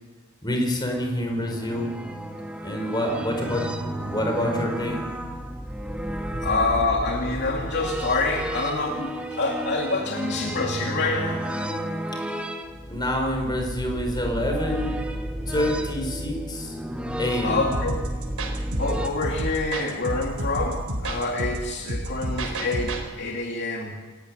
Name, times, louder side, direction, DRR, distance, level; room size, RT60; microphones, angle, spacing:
voice 1, 0.4-1.9 2.6-3.6 3.9-5.0 6.3-6.5 12.9-15.0 15.5-16.8 17.2-17.7, equal, 20° left, 2 dB, 5.4 m, -27 dB
sound 1, 0.9-19.1, equal, 5° right, 1.8 m, -32 dB
voice 2, 6.4-11.4 17.4-18.0 18.8-23.9, left 3 dB, 50° left, 0 dB, 2.8 m, -26 dB
sound 2, 17.7-23.0, right 1 dB, 75° right, 4.3 m, -30 dB
28.0 x 15.0 x 10.0 m, 1.3 s
head